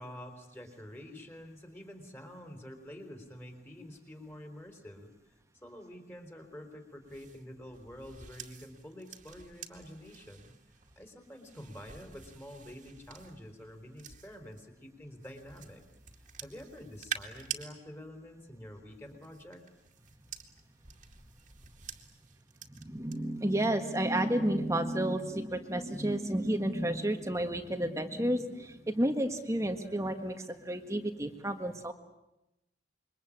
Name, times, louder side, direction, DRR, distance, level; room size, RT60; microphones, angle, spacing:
voice 1, 0.0-10.5 11.0-15.8 16.1-19.6, equal, 15° left, 5 dB, 4.2 m, -48 dB
sound 1, 7.1-14.6 15.2-17.7 18.9-23.2 23.5-23.9, right 8 dB, 45° right, 2.3 m, -47 dB
voice 2, 22.7-31.9, right 1 dB, 15° right, 6 dB, 1.6 m, -31 dB
27.0 x 23.5 x 8.7 m, 0.92 s
head